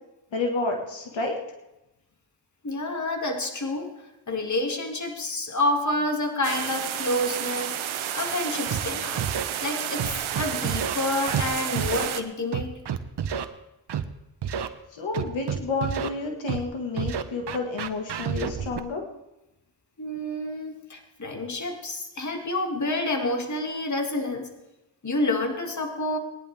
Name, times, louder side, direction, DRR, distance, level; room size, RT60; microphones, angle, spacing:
voice 1, 0.3-1.4 14.9-19.0, left 3 dB, 75° left, 2 dB, 1.9 m, -30 dB
voice 2, 2.6-3.9 4.3-9.3 9.6-10.0 10.4-12.8 20.0-24.5 25.0-26.2, left 2 dB, 40° left, 3 dB, 2.3 m, -28 dB
sound 1, 6.4-12.2, right 10 dB, 85° right, 1.0 m, -31 dB
Scratching (performance technique), 8.7-8.8 9.2-9.4 10.0-10.9 11.3-11.5 11.8-12.1 12.5-13.4 13.9-14.0 14.4-14.7 15.1-16.1 16.5-16.6 17.0-18.8, right 8 dB, 60° right, 1.0 m, -29 dB
18.5 x 10.5 x 3.5 m, 0.96 s
cardioid pair, 55°, 46 cm